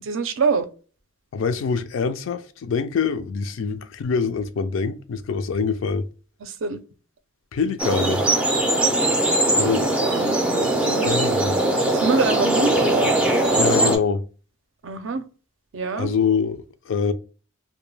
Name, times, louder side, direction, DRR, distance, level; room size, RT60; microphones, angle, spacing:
voice 1, 0.0-0.7 6.4-6.8 9.7-10.4 10.8-11.3 11.9-13.8 14.8-15.2 15.7-16.1, right 4 dB, 65° right, 0.5 m, -26 dB
voice 2, 1.3-6.0 7.5-8.2 9.6-9.9 11.0-11.6 13.6-14.2 16.0-17.1, left 5 dB, 70° left, 0.3 m, -24 dB
sound 1, 7.8-14.0, right 1 dB, 5° right, 0.3 m, -20 dB
2.2 x 2.1 x 3.1 m
head